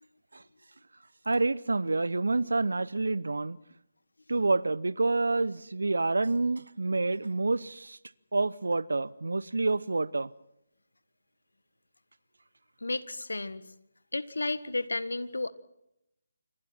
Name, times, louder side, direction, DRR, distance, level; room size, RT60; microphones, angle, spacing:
voice 1, 1.3-3.6 4.3-8.0 8.3-10.3, right 3 dB, 70° right, 0.8 m, -28 dB
voice 2, 12.8-13.6 14.1-15.5, left 2 dB, 75° left, 1.5 m, -32 dB
27.5 x 25.0 x 4.4 m
figure-of-eight pair, 150°, 0 cm